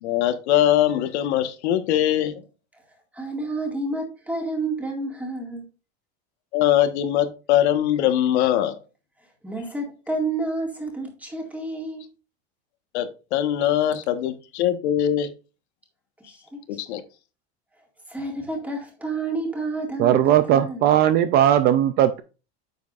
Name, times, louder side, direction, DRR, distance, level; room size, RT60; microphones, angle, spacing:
voice 1, 0.0-2.4 6.5-8.7 12.9-15.3 16.7-17.0, left 11 dB, 85° left, 1.3 m, -22 dB
voice 2, 3.1-5.6 9.4-12.0 16.3-16.8 18.1-20.9, right 2 dB, 5° right, 2.0 m, -30 dB
voice 3, 20.0-22.2, right 11 dB, 30° right, 0.4 m, -18 dB
9.2 x 7.1 x 2.5 m
supercardioid pair, 165°, 33 cm